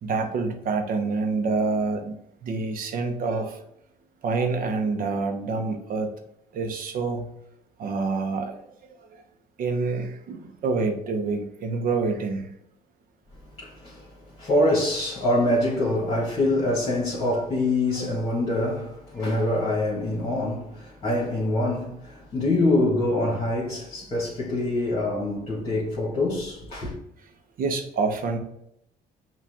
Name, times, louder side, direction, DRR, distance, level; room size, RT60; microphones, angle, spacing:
voice 1, 0.0-2.2 2.4-3.6 4.2-6.1 6.5-7.3 7.8-8.6 9.6-12.5 17.3-17.4 18.0-18.2 19.3-19.4 27.6-28.4, right 4 dB, 55° right, 0.8 m, -27 dB
voice 2, 13.6-14.1 14.4-26.9, left 1 dB, 35° left, 1.6 m, -25 dB
5.7 x 2.5 x 3.5 m
cardioid pair, 110°, 17 cm